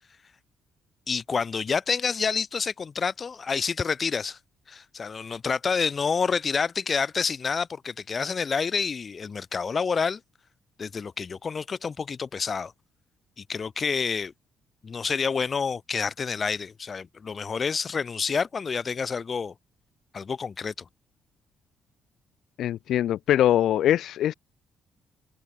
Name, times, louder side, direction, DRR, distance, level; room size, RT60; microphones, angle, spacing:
voice 1, 1.1-4.4 4.7-10.2 10.8-12.7 13.4-14.3 14.8-19.5 20.1-20.9, left 5 dB, 40° left, 2.0 m, -28 dB
voice 2, 22.6-24.3, left 12 dB, 75° left, 0.9 m, -22 dB
cardioid pair, 90°, 0 cm